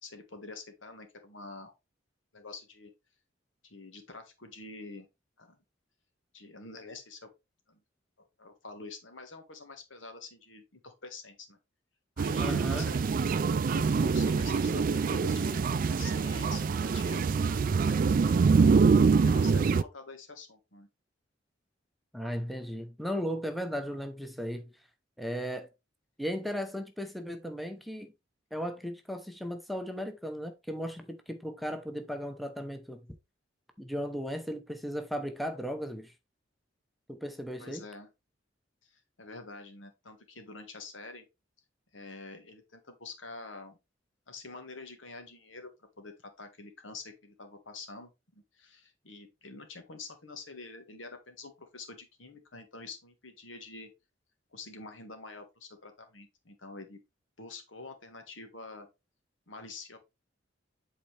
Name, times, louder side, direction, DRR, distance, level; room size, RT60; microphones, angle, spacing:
voice 1, 0.0-1.7 2.3-2.9 3.6-5.1 5.4-5.6 6.3-7.3 7.7-7.8 8.2-11.6 12.2-13.3 13.7-17.2 17.9-18.9 19.2-20.9 37.6-38.1 38.8-41.2 41.9-43.8 44.3-45.7 46.0-53.9 54.5-57.0 57.4-58.9 59.5-60.0, left 3 dB, 85° left, 1.6 m, -47 dB
sound 1, 12.2-19.8, right 5 dB, 45° right, 0.3 m, -25 dB
voice 2, 12.4-12.9 22.1-24.7 25.2-25.7 26.2-28.1 28.5-33.1 33.8-36.1 37.1-37.8, equal, ahead, 0.8 m, -36 dB
8.1 x 4.1 x 3.3 m
head